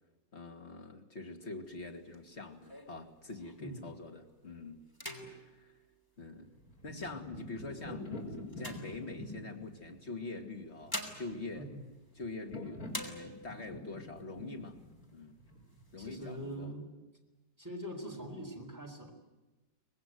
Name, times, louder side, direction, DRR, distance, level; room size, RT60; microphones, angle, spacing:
voice 1, 0.3-4.9 5.3-5.8 6.2-6.5 6.8-11.7 12.1-14.8 15.1-15.3 15.9-16.8, left 3 dB, 40° left, 4 dB, 2.8 m, -44 dB
sound 1, 1.6-3.8 4.3-4.5 4.9-6.8 7.5-9.6 10.5-12.5 12.9-13.7 14.2-14.3 14.5-15.2 15.7-16.6, equal, 10° left, 3.5 m, -47 dB
sound 2, 6.5-16.2, left 1 dB, 55° left, 5.1 m, -47 dB
voice 2, 16.0-16.9 17.6-19.1, right 1 dB, 10° right, 1 dB, 4.7 m, -43 dB
25.0 x 20.0 x 9.5 m, 1.1 s
omnidirectional pair, 1.8 m